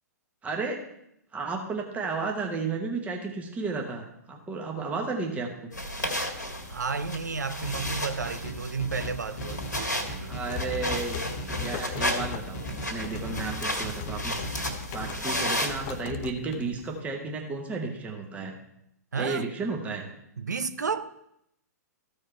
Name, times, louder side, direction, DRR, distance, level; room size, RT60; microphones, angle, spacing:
voice 1, 0.4-0.8 1.3-5.7 10.3-11.2 11.6-14.5 14.9-18.5 19.2-20.1, right 4 dB, 15° right, 1.2 m, -33 dB
sound 1, 5.7-16.0, left 1 dB, 85° left, 1.8 m, -33 dB
voice 2, 6.7-10.4 19.1-19.5 20.4-21.2, right 5 dB, 75° right, 0.6 m, -32 dB
sound 2, 7.6-15.1, equal, 50° left, 1.2 m, -39 dB
sound 3, 10.1-17.0, left 8 dB, 35° left, 0.5 m, -40 dB
14.0 x 4.8 x 4.4 m
figure-of-eight pair, 110°, 9 cm